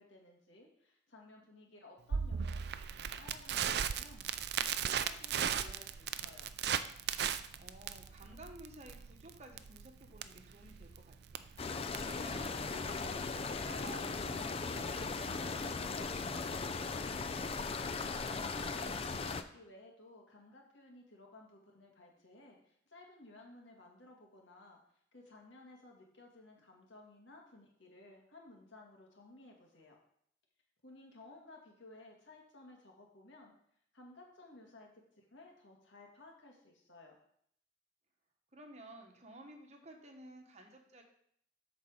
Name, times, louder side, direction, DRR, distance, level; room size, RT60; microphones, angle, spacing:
voice 1, 0.0-6.5 17.7-18.6 18.9-24.8 25.1-30.0 30.8-33.5 33.9-34.9 35.2-37.2, left 2 dB, 80° left, 1 dB, 1.9 m, -57 dB
Crackle, 2.1-14.1, right 8 dB, 55° right, 0.4 m, -38 dB
voice 2, 7.5-16.5 38.5-41.0, right 1 dB, 35° right, 3 dB, 1.2 m, -54 dB
sound 1, 11.6-19.4, left 4 dB, 30° left, 0.4 m, -38 dB
8.5 x 4.1 x 6.3 m, 0.68 s
head